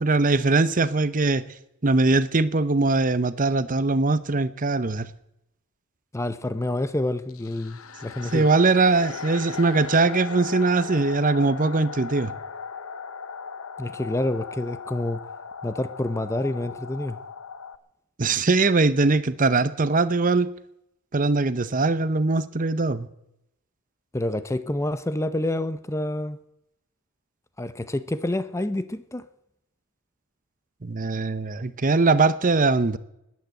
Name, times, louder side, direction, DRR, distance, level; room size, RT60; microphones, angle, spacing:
voice 1, 0.0-1.4 1.8-5.1 8.3-12.3 18.2-20.5 21.1-23.1 30.8-33.0, right 3 dB, 40° right, 0.8 m, -21 dB
voice 2, 6.1-8.5 13.8-15.2 15.6-17.2 24.1-26.4 27.6-29.3, left 1 dB, 15° left, 0.6 m, -28 dB
sound 1, 7.3-17.8, left 5 dB, 85° left, 0.9 m, -37 dB
20.0 x 9.4 x 7.7 m
head